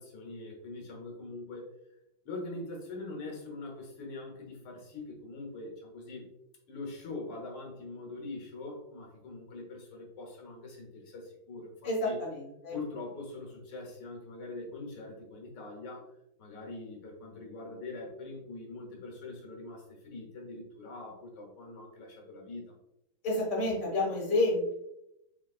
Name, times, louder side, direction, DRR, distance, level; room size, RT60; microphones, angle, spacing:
voice 1, 0.0-1.7 2.3-6.3 6.7-12.2 12.7-22.7, left 2 dB, 85° left, 0 dB, 2.0 m, -43 dB
voice 2, 11.8-12.8 23.2-24.7, left 2 dB, 25° left, -4 dB, 1.4 m, -29 dB
4.8 x 3.6 x 2.4 m, 0.82 s
omnidirectional pair, 2.3 m